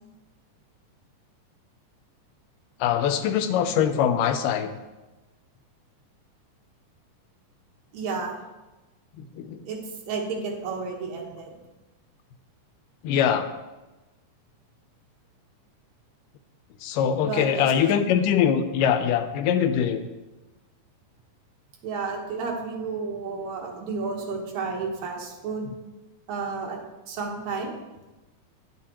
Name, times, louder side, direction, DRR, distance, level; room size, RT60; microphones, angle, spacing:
voice 1, 2.8-4.7 9.4-9.6 13.0-13.5 16.8-20.1, left 8 dB, 90° left, 9 dB, 2.2 m, -23 dB
voice 2, 7.9-8.3 9.7-9.8 10.1-11.6 17.2-17.7 21.8-25.7 26.3-26.8 27.1-27.8, right 4 dB, 65° right, 0 dB, 2.3 m, -31 dB
9.9 x 7.2 x 2.9 m, 1.1 s
omnidirectional pair, 3.8 m